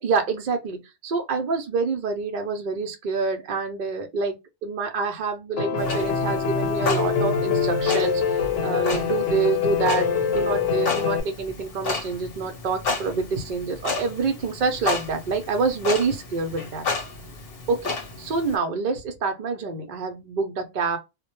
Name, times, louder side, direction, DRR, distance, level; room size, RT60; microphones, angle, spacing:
voice 1, 0.0-4.3 4.6-8.2 8.6-16.8 17.7-21.0, right 4 dB, 60° right, 0.5 m, -27 dB
Piano, 5.6-11.2, left 6 dB, 80° left, 1.0 m, -24 dB
Clock, 5.8-18.5, left 4 dB, 55° left, 0.8 m, -32 dB
2.1 x 2.0 x 2.9 m
omnidirectional pair, 1.3 m